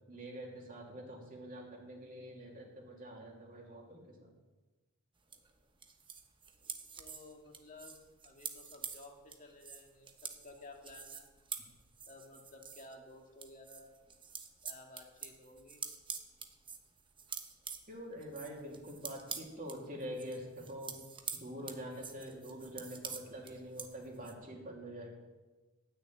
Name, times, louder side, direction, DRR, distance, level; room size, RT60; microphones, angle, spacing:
voice 1, 0.1-4.3 17.9-21.0 21.4-25.1, equal, 45° right, -1 dB, 2.7 m, -45 dB
sound 1, 5.3-12.9 13.3-24.3, right 6 dB, 25° right, 0.9 m, -47 dB
voice 2, 7.0-8.0 8.2-10.1 10.4-11.3 12.1-13.9 14.6-15.8, left 2 dB, 40° left, 1 dB, 2.0 m, -54 dB
12.0 x 6.5 x 8.9 m, 1.2 s
head